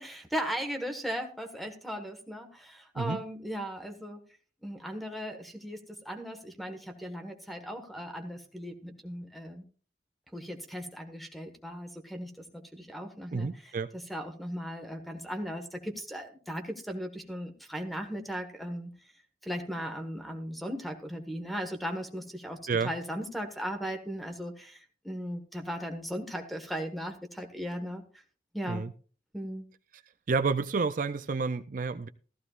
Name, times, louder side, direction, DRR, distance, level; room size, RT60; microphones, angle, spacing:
voice 1, 0.0-4.2 4.6-9.6 10.3-18.9 19.4-28.0 28.5-28.9 29.3-29.6, equal, ahead, 6 dB, 1.5 m, -37 dB
voice 2, 13.3-13.9 22.7-22.9 28.7-28.9 30.3-32.1, right 4 dB, 45° right, 8 dB, 0.5 m, -30 dB
15.0 x 14.0 x 2.5 m, 0.39 s
head